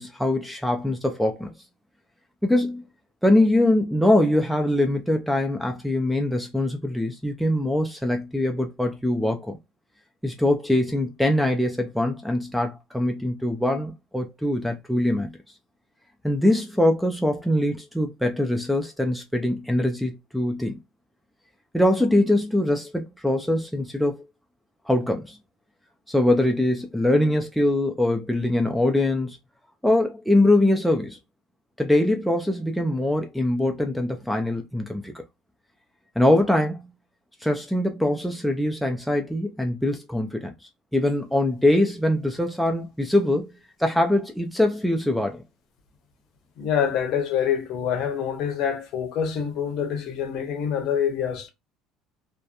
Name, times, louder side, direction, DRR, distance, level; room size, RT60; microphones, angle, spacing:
voice 1, 0.0-1.5 2.4-2.8 3.2-9.6 10.2-15.3 16.2-20.8 21.7-24.3 24.9-25.4 26.1-29.4 29.8-31.2 31.8-35.1 36.2-36.9 37.4-40.5 40.9-43.5 43.8-45.4, left 1 dB, ahead, 0.3 m, -23 dB
voice 2, 46.6-51.5, left 8 dB, 50° left, 0.7 m, -26 dB
2.7 x 2.1 x 2.2 m
cardioid pair, 155°, 0 cm